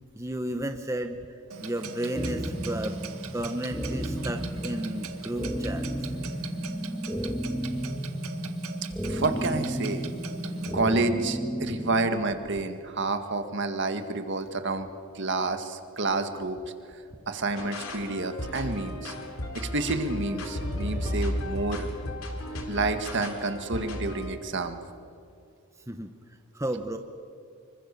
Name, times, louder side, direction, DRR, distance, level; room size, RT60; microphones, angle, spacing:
voice 1, 0.1-1.2 1.6-3.0 3.3-5.9 25.9-26.1 26.5-27.0, right 1 dB, 15° right, 6 dB, 0.9 m, -32 dB
Clock, 1.5-10.7, right 5 dB, 85° right, 1.9 m, -42 dB
sound 1, 2.1-12.1, equal, 5° left, 1.7 m, -33 dB
voice 2, 9.0-10.0 10.7-14.9 15.1-16.6 17.3-19.1 19.5-21.9 22.7-24.8, right 3 dB, 55° right, 7 dB, 1.8 m, -29 dB
sound 2, 17.6-24.4, left 1 dB, 75° left, 3.3 m, -34 dB
25.5 x 24.0 x 6.9 m, 2.5 s
head